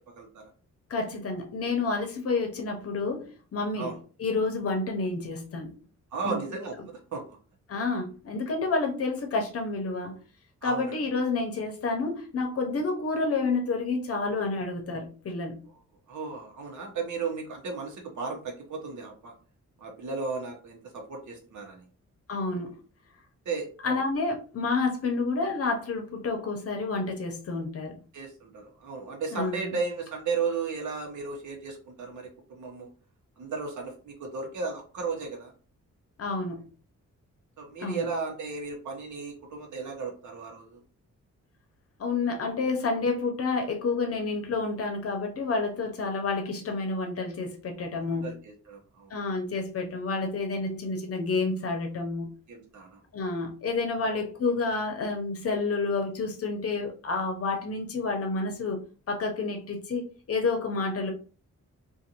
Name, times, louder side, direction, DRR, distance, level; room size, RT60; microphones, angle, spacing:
voice 1, 0.1-0.5 3.8-4.0 6.1-7.4 10.6-11.0 16.1-19.3 19.8-21.8 23.4-24.0 28.1-32.9 33.4-35.5 37.6-40.8 48.2-49.1 52.5-53.0 54.0-54.2, right 4 dB, 80° right, 1.0 m, -35 dB
voice 2, 0.9-3.9 4.2-5.7 6.2-6.4 7.7-10.2 10.6-15.6 22.3-22.8 23.8-28.0 29.3-29.8 36.2-36.7 37.8-38.0 42.0-48.4 49.1-52.3 53.1-58.8 59.1-61.1, left 3 dB, 50° left, 0.7 m, -29 dB
2.6 x 2.5 x 2.8 m
wide cardioid pair, 165°, 29 cm